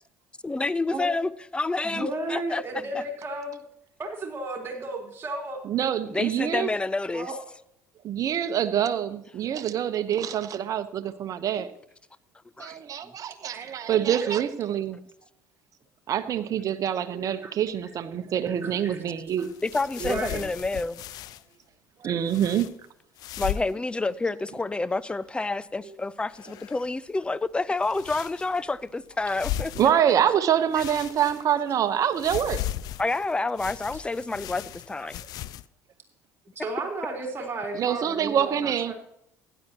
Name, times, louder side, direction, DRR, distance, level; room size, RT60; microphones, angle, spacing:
voice 1, 0.4-2.6 2.9-3.0 6.1-7.3 12.6-12.8 13.0-13.1 19.6-21.0 23.4-29.7 33.0-35.2, left 3 dB, 15° left, 0.6 m, -29 dB
voice 2, 1.8-3.6 4.0-5.6 7.1-7.3 9.4-9.5 13.5-13.7 14.2-14.3 17.1-17.5 18.5-19.0 20.0-20.4 25.8-26.0 36.6-38.9, right 2 dB, 30° right, 3.8 m, -34 dB
voice 3, 5.6-6.7 8.0-11.7 12.6-15.0 16.1-19.5 22.0-22.7 29.7-32.6 37.7-38.9, right 9 dB, 50° right, 1.0 m, -25 dB
sound 1, 19.3-21.4 22.3-22.7 23.2-23.8 24.1-24.2 24.6-25.3 26.3-27.0 27.8-28.7 29.2-30.3 30.7-31.7 32.1-35.7, left 13 dB, 60° left, 0.4 m, -37 dB
16.0 x 11.0 x 3.0 m
hypercardioid pair, 70°, 7 cm